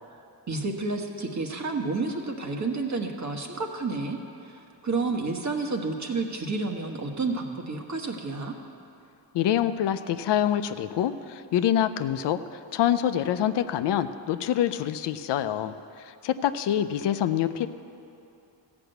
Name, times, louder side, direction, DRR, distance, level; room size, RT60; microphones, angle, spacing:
voice 1, 0.5-4.2 4.4-8.5, right 3 dB, 40° right, 3 dB, 1.4 m, -30 dB
voice 2, 9.3-17.7, left 10 dB, 80° left, 11 dB, 0.6 m, -26 dB
15.0 x 6.1 x 7.9 m, 2.6 s
cardioid pair, 80°, 41 cm